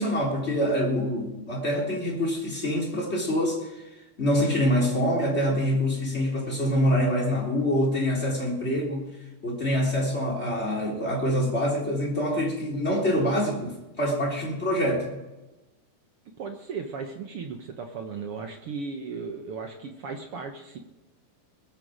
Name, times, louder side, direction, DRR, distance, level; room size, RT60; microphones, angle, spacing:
voice 1, 0.0-3.7 4.2-9.1 9.4-15.2, equal, 20° left, -2 dB, 3.4 m, -25 dB
voice 2, 16.4-20.8, right 5 dB, 75° right, 4 dB, 1.3 m, -36 dB
21.5 x 8.6 x 5.1 m, 1.0 s
omnidirectional pair, 4.2 m